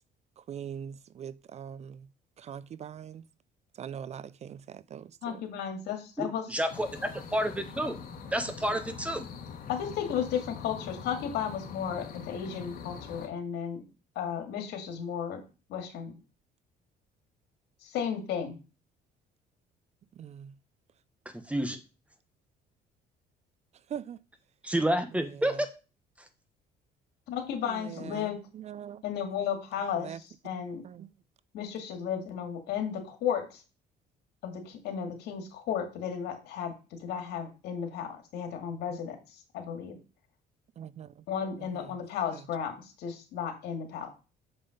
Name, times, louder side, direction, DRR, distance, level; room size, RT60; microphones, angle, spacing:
voice 1, 0.4-2.1 2.4-3.2 3.8-5.4 20.2-20.5 23.9-24.2 25.1-25.6 27.6-29.0 30.0-30.2 30.8-31.1 40.8-41.2 41.7-41.8, right 8 dB, 40° right, 0.4 m, -42 dB
voice 2, 5.2-6.5 9.7-13.8 14.2-15.4 15.7-16.2 17.8-18.6 27.3-28.4 29.0-30.8 31.5-33.6 34.4-40.0 41.3-44.1, left 8 dB, 80° left, 2.1 m, -34 dB
voice 3, 6.2-8.0 8.3-9.3 21.5-21.8 24.6-25.7, right 1 dB, 5° right, 1.2 m, -29 dB
sound 1, 6.7-13.3, left 6 dB, 60° left, 1.8 m, -43 dB
7.0 x 5.5 x 5.1 m
cardioid pair, 110°, 17 cm